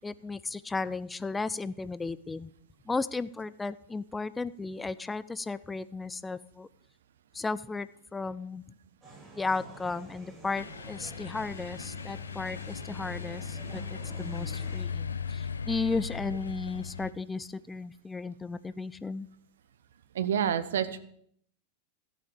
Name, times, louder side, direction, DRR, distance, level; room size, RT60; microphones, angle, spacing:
voice 1, 0.0-2.5 2.9-6.7 7.3-8.6 9.4-19.3, left 3 dB, 10° left, 16 dB, 0.4 m, -35 dB
sound 1, 9.0-14.8, right 3 dB, 25° right, 7.6 m, -49 dB
sound 2, 10.5-17.1, left 6 dB, 75° left, 0.8 m, -38 dB
voice 2, 20.1-21.0, right 9 dB, 65° right, 14 dB, 0.9 m, -28 dB
14.0 x 8.6 x 6.8 m, 0.66 s
figure-of-eight pair, 90°, 0 cm